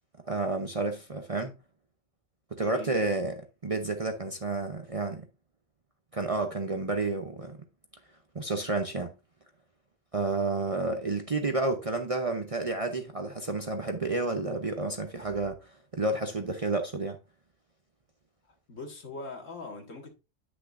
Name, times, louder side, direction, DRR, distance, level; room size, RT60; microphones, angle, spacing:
voice 1, 0.3-1.5 2.5-3.3 3.6-5.2 6.1-7.6 8.3-9.1 10.1-17.2, right 3 dB, 35° right, 0.7 m, -30 dB
voice 2, 2.7-3.2 18.5-20.2, left 3 dB, 75° left, 2.2 m, -42 dB
10.0 x 6.0 x 2.5 m
omnidirectional pair, 1.4 m